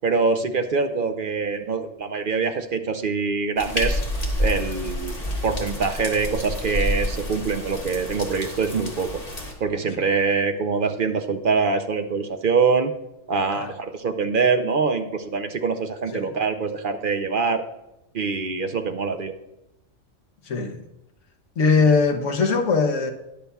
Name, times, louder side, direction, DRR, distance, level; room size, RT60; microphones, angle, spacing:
voice 1, 0.0-4.0 4.4-5.2 5.4-9.2 9.6-12.9 13.3-17.6 18.1-19.3, right 4 dB, 50° right, 0.7 m, -24 dB
sound 1, 3.6-9.5, left 1 dB, 30° left, 1.5 m, -28 dB
voice 2, 20.5-20.8 21.6-23.1, left 4 dB, 70° left, 1.3 m, -21 dB
20.0 x 6.8 x 2.3 m
omnidirectional pair, 1.3 m